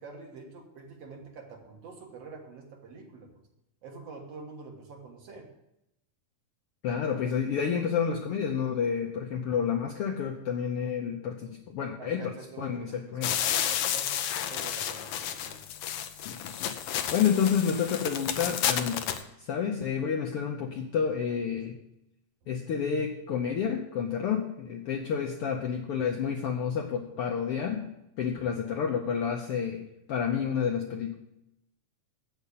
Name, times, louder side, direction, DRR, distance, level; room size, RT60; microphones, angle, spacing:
voice 1, 0.0-3.5 3.8-5.5 12.0-14.2 14.5-15.7 18.9-19.2, right 4 dB, 60° right, 2 dB, 2.3 m, -46 dB
voice 2, 6.8-13.3 16.2-19.0 19.5-21.8 22.5-27.9 28.2-29.8 30.1-31.1, left 7 dB, 70° left, 1 dB, 1.4 m, -30 dB
sound 1, 13.2-19.2, left 10 dB, 90° left, 1.2 m, -31 dB
8.1 x 7.1 x 8.2 m, 0.85 s
omnidirectional pair, 3.5 m